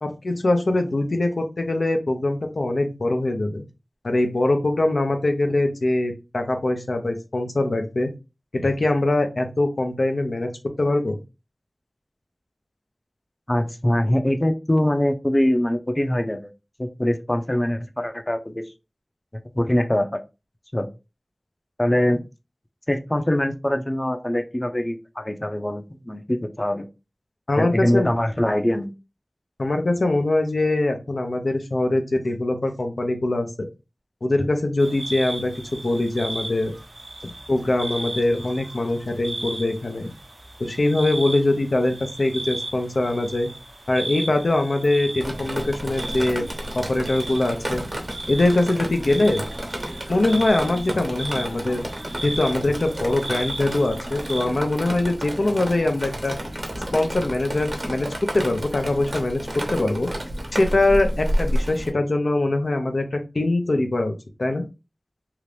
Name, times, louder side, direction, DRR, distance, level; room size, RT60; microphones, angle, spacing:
voice 1, 0.0-3.6 4.0-8.1 8.5-10.5 10.8-11.2 27.5-28.1 29.6-33.7 34.2-36.7 37.5-40.1 40.6-43.5 43.9-46.4 46.7-47.8 48.3-49.5 50.1-51.8 52.2-56.3 56.9-58.1 58.3-59.4 59.7-60.1 60.5-64.6, left 2 dB, 85° left, 5 dB, 0.7 m, -22 dB
voice 2, 13.5-16.5 16.8-18.7 19.3-20.2 20.7-20.9 21.8-22.2 22.9-26.9 27.6-28.9, left 1 dB, 30° left, 7 dB, 0.6 m, -23 dB
sound 1, 34.8-54.4, right 1 dB, 85° right, 0.8 m, -36 dB
Drip, 45.2-61.9, equal, 60° right, 0.9 m, -31 dB
2.9 x 2.5 x 3.3 m, 0.27 s
wide cardioid pair, 40°, 0 cm